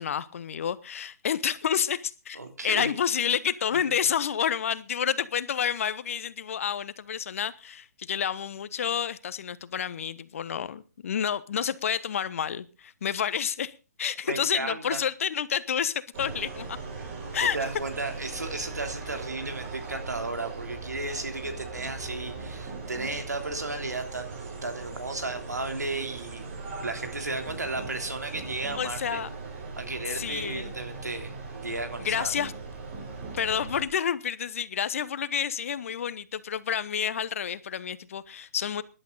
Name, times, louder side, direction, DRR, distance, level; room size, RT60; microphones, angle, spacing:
voice 1, 0.0-2.4 2.6-13.7 14.0-16.8 17.3-17.6 28.8-29.3 30.1-30.7 32.0-32.5 33.3-38.8, left 8 dB, 55° left, 1.1 m, -29 dB
voice 2, 2.3-2.9 14.2-15.0 17.0-17.1 17.4-26.5 26.8-29.2 29.8-32.3, right 2 dB, 90° right, 3.4 m, -34 dB
sound 1, 16.1-33.9, right 4 dB, 45° right, 7.3 m, -39 dB
18.0 x 11.5 x 4.0 m
figure-of-eight pair, 135°, 9 cm